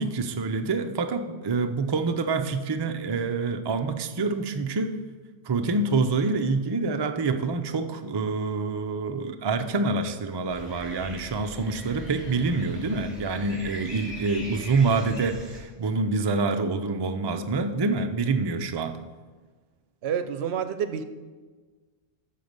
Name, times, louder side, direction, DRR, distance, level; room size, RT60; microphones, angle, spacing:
voice 1, 0.0-4.9 5.5-18.9, right 3 dB, 45° right, 6 dB, 0.3 m, -26 dB
sound 1, 10.5-15.6, equal, 10° right, 2.7 m, -41 dB
voice 2, 20.0-21.0, right 8 dB, 70° right, 11 dB, 0.8 m, -28 dB
13.0 x 4.7 x 5.3 m, 1.4 s
omnidirectional pair, 1.2 m